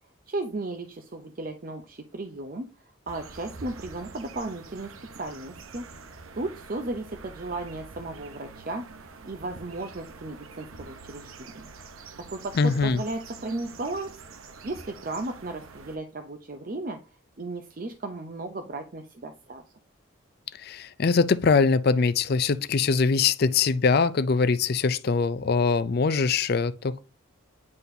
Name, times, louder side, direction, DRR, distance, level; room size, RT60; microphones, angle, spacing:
voice 1, 0.3-2.7 3.1-5.8 6.3-8.8 9.2-11.7 12.3-14.1 14.6-17.0 17.4-19.6, right 2 dB, 40° right, 0.6 m, -35 dB
sound 1, 3.1-16.0, right 4 dB, 85° right, 0.8 m, -46 dB
voice 2, 12.6-13.0 20.6-27.1, left 4 dB, 50° left, 0.4 m, -23 dB
9.6 x 4.1 x 2.7 m
head